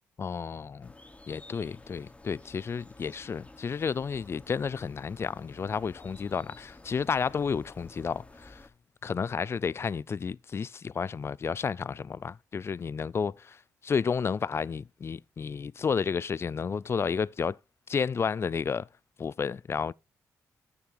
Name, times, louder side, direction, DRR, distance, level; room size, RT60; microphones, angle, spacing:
voice 1, 0.2-0.9 1.3-8.6 9.0-13.6 13.8-17.6 17.9-18.9 19.2-19.9, left 6 dB, 40° left, 0.4 m, -31 dB
sound 1, 0.8-8.7, left 2 dB, 20° left, 1.5 m, -52 dB
8.8 x 6.9 x 4.7 m
supercardioid pair, 60°, 7 cm